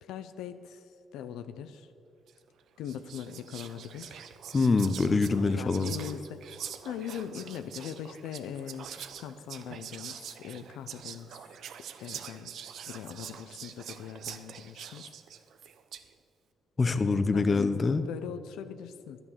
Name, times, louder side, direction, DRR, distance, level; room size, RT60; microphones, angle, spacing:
voice 1, 0.0-1.9 2.8-4.2 5.6-11.4 12.0-12.5 12.9-15.1 16.8-19.2, left 9 dB, 90° left, 10 dB, 0.5 m, -41 dB
Whispering, 2.3-2.5 2.8-16.1, right 8 dB, 70° right, 0.7 m, -44 dB
voice 2, 4.5-5.9 16.8-18.0, left 3 dB, 30° left, 11 dB, 0.8 m, -25 dB
11.0 x 9.8 x 7.2 m, 2.5 s
cardioid pair, 90°, 0 cm